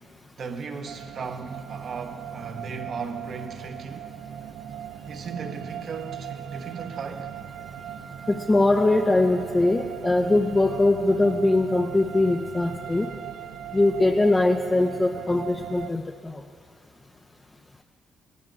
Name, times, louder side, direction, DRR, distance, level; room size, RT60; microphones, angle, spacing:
voice 1, 0.4-4.2 5.1-7.3, right 5 dB, 55° right, 1.0 m, -36 dB
sound 1, 0.9-15.9, right 10 dB, 70° right, 0.4 m, -39 dB
voice 2, 8.3-13.1 13.7-16.4, left 2 dB, 20° left, 0.6 m, -21 dB
23.0 x 17.0 x 2.5 m
cardioid pair, 90°, 0 cm